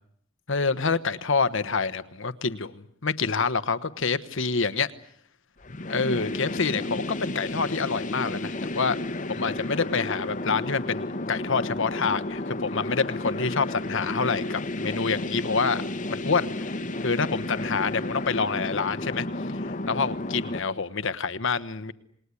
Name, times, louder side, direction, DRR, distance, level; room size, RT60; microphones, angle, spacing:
voice 1, 0.5-4.9 5.9-9.0 9.3-15.8 16.1-21.9, left 4 dB, 65° left, 13 dB, 1.2 m, -27 dB
sound 1, 5.6-20.6, left 2 dB, 40° left, 1.1 m, -32 dB
28.0 x 20.0 x 9.8 m, 0.69 s
head